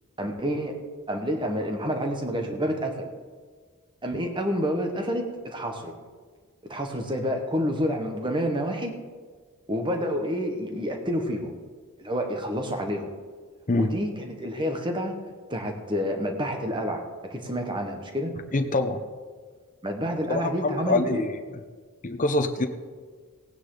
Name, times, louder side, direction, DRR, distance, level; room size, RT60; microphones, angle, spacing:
voice 1, 0.2-0.8 1.1-3.1 4.0-5.9 6.7-8.9 9.7-11.5 12.0-13.1 13.7-15.1 15.5-17.0 17.3-18.3 19.8-21.2, equal, 20° right, 4 dB, 1.4 m, -28 dB
voice 2, 18.5-19.1 20.3-21.4 22.0-22.7, left 2 dB, 35° left, 6 dB, 0.8 m, -25 dB
17.5 x 9.6 x 3.9 m, 1.5 s
head